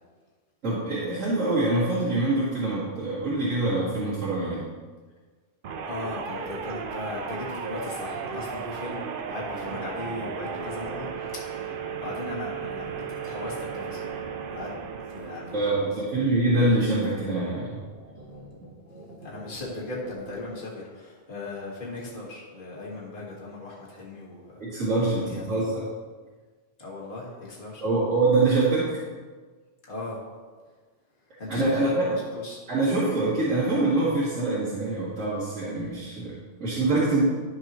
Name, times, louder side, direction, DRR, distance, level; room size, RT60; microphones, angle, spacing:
voice 1, 0.6-4.6 15.5-17.8 24.6-25.8 27.8-28.9 31.5-31.9 32.7-37.2, right 2 dB, 80° right, -10 dB, 2.3 m, -25 dB
sound 1, 5.6-16.0, right 6 dB, 55° right, 0.7 m, -35 dB
sound 2, 5.7-20.4, right 1 dB, 30° right, 1.5 m, -46 dB
voice 2, 5.9-9.0 9.3-11.1 11.3-14.2 14.5-14.7 15.1-15.9 16.2-16.3 16.7-16.8 19.2-24.6 25.1-25.4 26.8-27.8 29.9-30.2 31.4-32.6, left 2 dB, 45° left, -5 dB, 1.9 m, -37 dB
12.0 x 6.0 x 3.0 m, 1.4 s
omnidirectional pair, 1.3 m